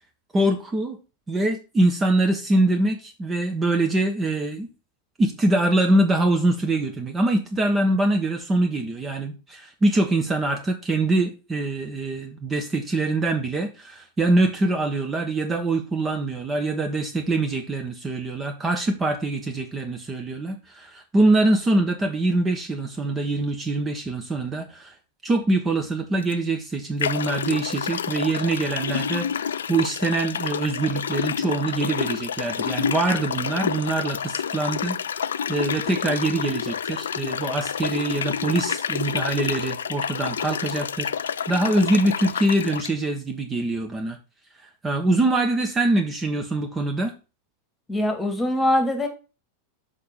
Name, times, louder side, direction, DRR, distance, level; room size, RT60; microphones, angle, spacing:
voice 1, 0.3-1.0 1.3-4.7 5.2-24.9 25.2-41.1 41.5-44.2 44.8-47.1, right 2 dB, 15° right, 1.4 m, -24 dB
sound 1, 26.2-26.3 27.0-42.9, left 7 dB, 65° left, 0.3 m, -29 dB
voice 2, 47.9-49.1, left 1 dB, 15° left, 1.9 m, -22 dB
6.4 x 5.9 x 5.5 m
figure-of-eight pair, 90°, 0 cm